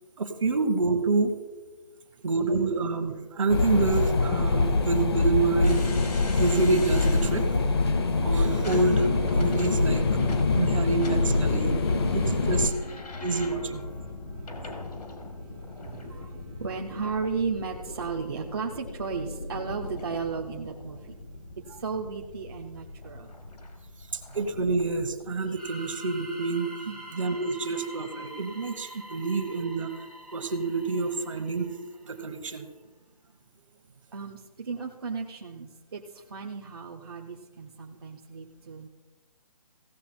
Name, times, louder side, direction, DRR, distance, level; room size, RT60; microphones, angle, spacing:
voice 1, 0.2-1.4 2.2-5.8 6.3-7.5 8.2-10.1 10.5-11.8 12.1-12.7 13.2-13.8 24.1-26.7 27.1-29.9 30.3-31.7 32.0-32.7, right 3 dB, 55° right, 8 dB, 1.3 m, -27 dB
sound 1, 3.5-12.7, left 3 dB, 40° left, 0.8 m, -24 dB
sound 2, 5.6-25.3, left 2 dB, 85° left, 2.0 m, -41 dB
voice 2, 14.0-14.8 15.4-21.2 21.7-23.4 26.9-27.0 34.1-38.9, right 5 dB, 40° right, 0 dB, 0.7 m, -35 dB
sound 3, 25.5-32.2, right 1 dB, ahead, 0.5 m, -45 dB
16.0 x 6.8 x 4.3 m, 1.2 s
hypercardioid pair, 170°, 20 cm